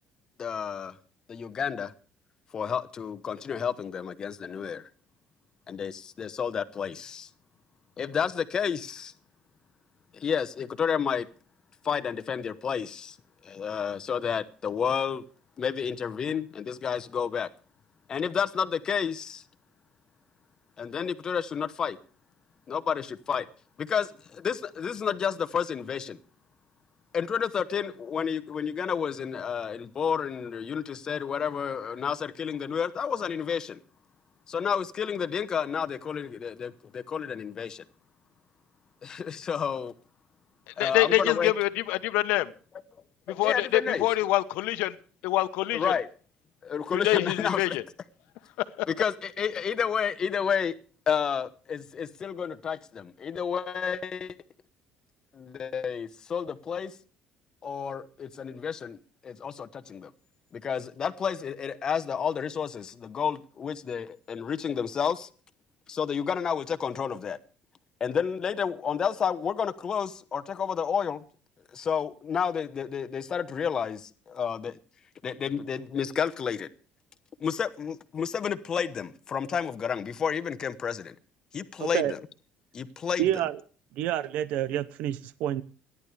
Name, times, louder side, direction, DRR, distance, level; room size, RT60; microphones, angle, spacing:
voice 1, 0.4-1.0 1.3-1.9 2.5-4.9 5.7-7.3 8.0-9.1 10.1-11.3 11.8-13.2 13.4-15.2 15.6-17.5 18.1-19.4 20.8-22.0 22.7-23.4 23.8-26.2 27.1-33.8 34.5-37.8 39.0-39.9 40.8-41.5 43.3-44.1 45.7-46.1 46.6-47.8 48.9-50.7 51.1-54.4 55.3-56.9 57.6-59.0 59.2-60.1 60.5-65.3 65.9-67.4 68.0-71.2 71.7-74.8 75.2-76.7 77.4-81.1 81.5-82.2 82.7-83.3, left 7 dB, 30° left, 1.0 m, -30 dB
voice 2, 40.8-42.5 43.3-44.9 45.2-45.9 47.0-47.8 48.8-48.9, left 16 dB, 80° left, 1.1 m, -25 dB
voice 3, 81.8-82.1 83.2-83.6 84.0-85.6, right 12 dB, 70° right, 0.8 m, -28 dB
29.0 x 11.0 x 3.4 m
cardioid pair, 175°, 3 cm